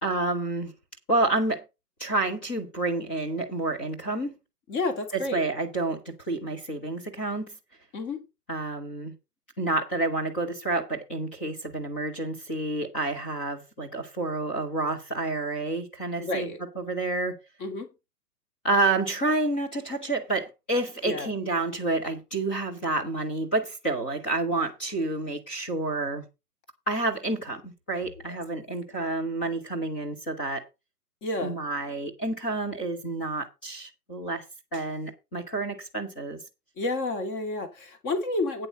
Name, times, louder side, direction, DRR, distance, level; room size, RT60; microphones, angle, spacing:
voice 1, 0.0-0.7 1.1-1.6 2.0-4.3 5.3-7.5 8.5-9.1 9.6-17.4 18.6-26.2 26.9-30.6 31.4-34.4 34.7-36.4, right 2 dB, 5° left, 0.5 m, -29 dB
voice 2, 4.7-5.4 7.9-8.2 16.2-16.6 17.6-17.9 21.0-21.3 28.3-28.4 31.2-31.6 36.8-38.7, left 2 dB, 25° left, 2.5 m, -30 dB
9.0 x 7.7 x 5.2 m
figure-of-eight pair, 135°, 47 cm